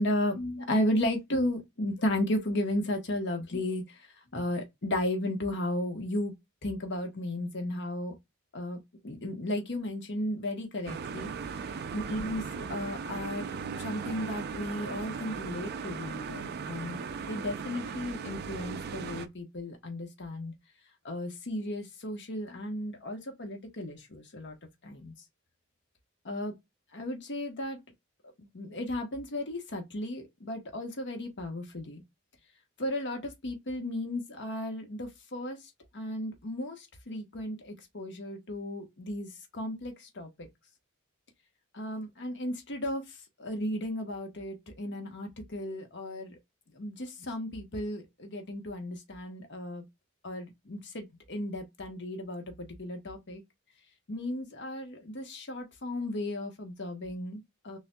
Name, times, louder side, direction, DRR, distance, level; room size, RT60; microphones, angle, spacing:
voice 1, 0.0-4.0 4.3-6.3 6.6-8.1 8.5-11.3 11.9-20.5 21.0-24.5 24.8-25.1 26.2-26.6 26.9-27.8 28.4-32.0 32.8-35.6 35.9-40.5 41.7-46.4 46.7-49.8 50.2-53.4 54.1-57.8, left 1 dB, 55° left, 1.1 m, -34 dB
sound 1, 10.9-19.3, right 5 dB, 50° right, 0.4 m, -38 dB
6.5 x 2.5 x 2.2 m
head